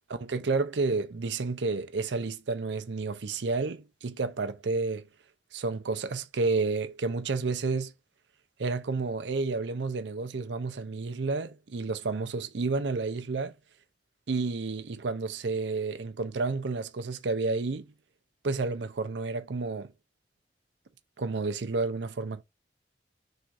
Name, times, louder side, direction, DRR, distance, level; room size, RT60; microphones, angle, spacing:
voice 1, 0.1-5.1 5.5-7.9 8.6-13.5 14.3-17.9 18.4-19.9 21.2-22.4, right 3 dB, 85° right, 0.6 m, -30 dB
3.6 x 2.7 x 4.7 m
head